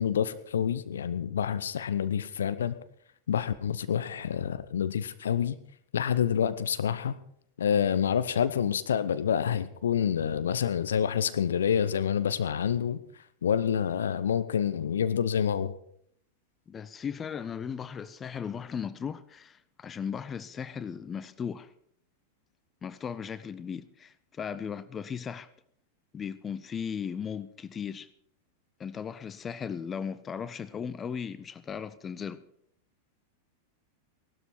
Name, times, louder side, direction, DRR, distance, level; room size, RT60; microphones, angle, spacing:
voice 1, 0.0-2.7 3.3-5.6 5.9-7.2 7.6-13.0 13.4-15.7, left 8 dB, 65° left, 0.7 m, -27 dB
voice 2, 16.7-21.7 22.8-25.5 26.1-28.1 28.8-32.4, left 7 dB, 20° left, 0.6 m, -37 dB
16.5 x 12.5 x 4.6 m
figure-of-eight pair, 90°, 0 cm